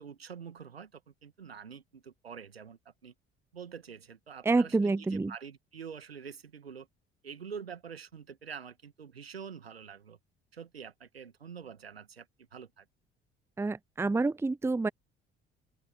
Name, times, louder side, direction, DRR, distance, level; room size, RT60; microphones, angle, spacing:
voice 1, 0.0-3.1 3.5-6.9 7.2-10.2 10.5-12.9, right 7 dB, 85° right, 1.8 m, -46 dB
voice 2, 4.5-5.3 13.6-14.9, right 3 dB, 10° right, 0.6 m, -28 dB
open air
figure-of-eight pair, 50°, 30 cm